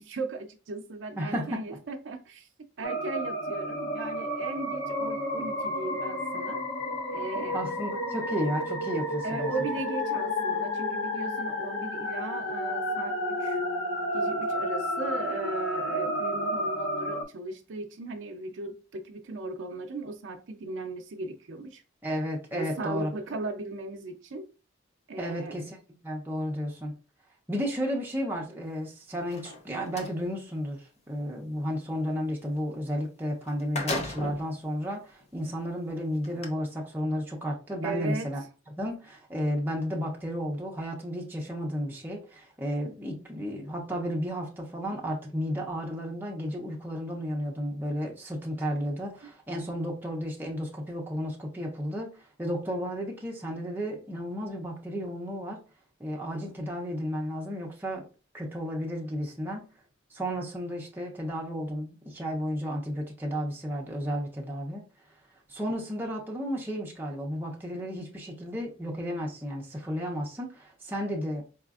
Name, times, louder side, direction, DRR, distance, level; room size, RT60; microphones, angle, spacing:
voice 1, 0.0-2.5 2.8-6.6 7.1-7.6 9.2-13.6 14.1-21.8 22.5-24.5 25.1-25.6 37.8-38.3, right 3 dB, 65° right, 0.5 m, -37 dB
voice 2, 1.2-1.6 7.5-9.5 22.0-23.1 25.2-25.8 26.0-26.9 27.5-38.4 38.8-55.6 56.0-58.0 58.3-59.6 60.1-64.8 65.5-71.4, equal, 10° right, 0.6 m, -33 dB
sound 1, 2.8-17.2, left 1 dB, 75° left, 0.9 m, -31 dB
sound 2, 29.2-30.2 33.0-33.1 33.4-34.5 35.2-35.3 36.2-36.5, left 2 dB, 30° left, 0.5 m, -34 dB
4.8 x 2.4 x 2.4 m
head